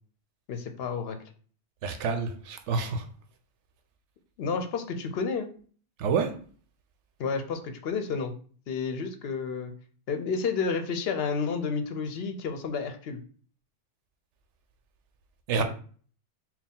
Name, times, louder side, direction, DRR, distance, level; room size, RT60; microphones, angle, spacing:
voice 1, 0.5-1.2 4.4-5.5 7.2-8.3 8.7-9.7 10.1-13.2 15.6-15.7, left 5 dB, 65° left, 0.8 m, -30 dB
voice 2, 1.8-3.1 6.0-6.4 15.5-15.6, right 5 dB, 85° right, 0.9 m, -28 dB
4.1 x 2.3 x 3.6 m
omnidirectional pair, 1.2 m